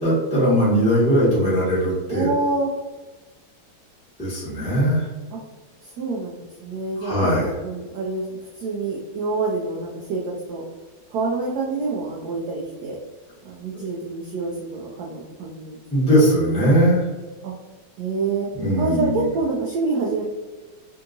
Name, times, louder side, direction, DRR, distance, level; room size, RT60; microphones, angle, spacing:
voice 1, 0.0-2.3 4.2-5.1 7.0-7.5 15.9-17.0 18.6-19.2, equal, 5° left, -9 dB, 0.9 m, -19 dB
voice 2, 2.1-2.7 5.3-5.4 5.8-7.1 7.4-10.6 11.1-13.0 13.4-16.4 17.4-17.5 18.0-18.5 18.8-20.2, right 3 dB, 80° right, -2 dB, 0.9 m, -27 dB
3.5 x 2.8 x 2.5 m, 1.2 s
omnidirectional pair, 2.2 m